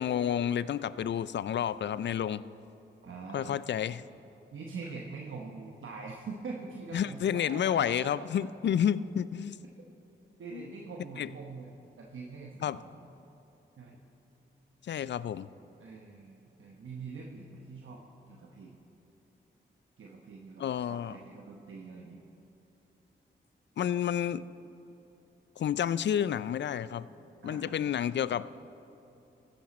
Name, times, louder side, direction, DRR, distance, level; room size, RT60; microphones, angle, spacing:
voice 1, 0.0-2.4 3.3-4.0 6.9-9.6 10.5-10.6 11.2-11.3 12.6-12.8 14.8-15.5 20.6-21.2 23.8-24.4 25.6-27.1 27.4-28.6, left 9 dB, 60° left, 17 dB, 0.4 m, -30 dB
voice 2, 3.0-3.6 4.5-8.5 10.4-11.7 12.0-13.0 13.8-14.0 15.8-18.0 18.3-18.8 20.0-22.2 27.4-27.8, right 4 dB, 75° right, -1 dB, 1.0 m, -44 dB
14.5 x 9.3 x 4.2 m, 2.9 s
supercardioid pair, 45°, 21 cm